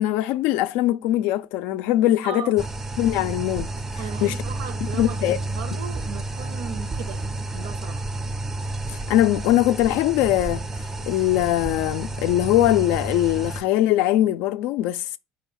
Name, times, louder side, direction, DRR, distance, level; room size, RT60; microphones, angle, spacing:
voice 1, 0.0-2.6 3.0-3.7 4.2-4.4 4.8-5.4 8.9-10.6 11.1-15.2, left 14 dB, 75° left, 0.3 m, -21 dB
voice 2, 2.2-2.6 4.0-8.0, right 7 dB, 85° right, 0.5 m, -37 dB
sound 1, 2.6-13.6, right 2 dB, 15° right, 0.4 m, -31 dB
4.7 x 2.2 x 4.7 m
cardioid pair, 130°, 3 cm